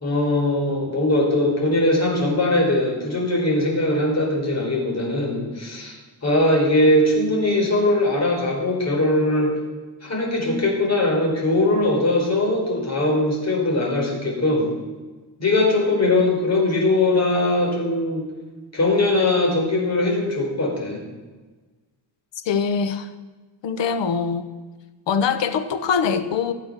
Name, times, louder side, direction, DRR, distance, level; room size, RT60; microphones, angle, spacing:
voice 1, 0.0-5.9 6.2-9.6 10.0-14.7 15.4-18.3 18.7-21.0, left 2 dB, 35° left, -1 dB, 4.5 m, -20 dB
voice 2, 22.4-23.1 23.6-24.5 25.1-26.5, left 6 dB, 85° left, 11 dB, 1.2 m, -23 dB
15.5 x 8.2 x 6.7 m, 1.3 s
wide cardioid pair, 130°, 43 cm